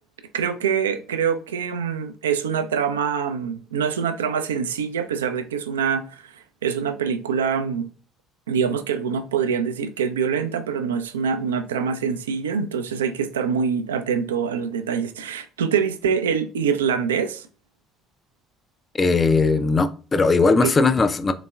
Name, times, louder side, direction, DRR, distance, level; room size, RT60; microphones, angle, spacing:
voice 1, 0.3-7.9 8.5-17.5 20.6-20.7, right 6 dB, 75° right, 0.3 m, -25 dB
voice 2, 18.9-21.3, left 4 dB, 30° left, 0.4 m, -19 dB
3.9 x 3.4 x 2.3 m
figure-of-eight pair, 50°, 0 cm